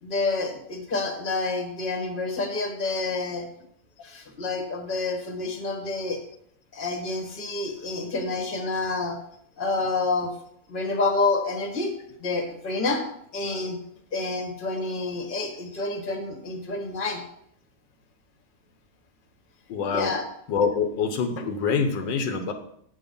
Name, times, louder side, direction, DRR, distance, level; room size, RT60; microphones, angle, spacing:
voice 1, 0.0-3.5 4.0-6.2 6.7-9.2 9.6-10.3 10.7-11.9 12.2-13.0 13.3-13.8 14.1-17.2 19.9-20.2, left 3 dB, 30° left, 4 dB, 1.5 m, -28 dB
voice 2, 19.7-20.1 20.5-22.5, left 5 dB, 85° left, 7 dB, 1.6 m, -25 dB
8.4 x 6.4 x 5.3 m, 0.69 s
omnidirectional pair, 1.9 m